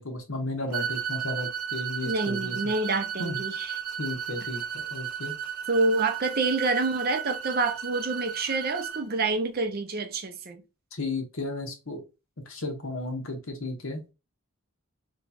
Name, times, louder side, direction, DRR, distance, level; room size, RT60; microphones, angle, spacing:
voice 1, 0.0-2.6 3.2-3.4 4.0-5.3 10.9-12.0 12.5-14.0, left 2 dB, 65° left, 1.1 m, -34 dB
sound 1, 0.7-9.0, right 8 dB, 80° right, 0.9 m, -34 dB
voice 2, 2.0-3.8 5.7-10.6, right 3 dB, 45° right, 0.6 m, -27 dB
3.1 x 2.3 x 4.1 m
head